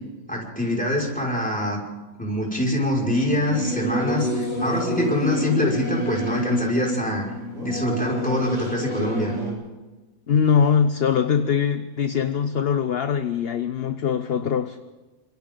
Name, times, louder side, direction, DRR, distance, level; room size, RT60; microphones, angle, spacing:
voice 1, 0.3-1.8 2.2-7.2 7.6-9.3, left 1 dB, 5° left, -3 dB, 5.6 m, -24 dB
Singing / Musical instrument, 3.3-9.5, equal, 60° right, 8.5 m, -28 dB
voice 2, 10.3-14.8, left 7 dB, 50° left, 9 dB, 1.0 m, -22 dB
29.5 x 26.0 x 3.9 m, 1.2 s
omnidirectional pair, 1.5 m